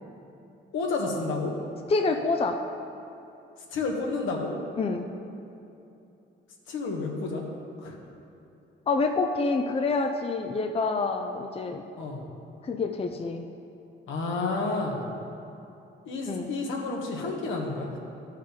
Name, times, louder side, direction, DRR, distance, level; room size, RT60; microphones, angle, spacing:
voice 1, 0.7-1.5 3.7-4.5 6.7-7.4 7.8-8.0 12.0-12.2 14.1-15.1 16.0-18.0, left 3 dB, 80° left, 0 dB, 1.6 m, -30 dB
voice 2, 1.9-2.6 4.8-5.0 8.9-11.8 12.6-13.4 16.3-16.5, left 3 dB, 30° left, 5 dB, 0.6 m, -27 dB
13.0 x 5.7 x 5.1 m, 2.8 s
cardioid pair, 90°, 20 cm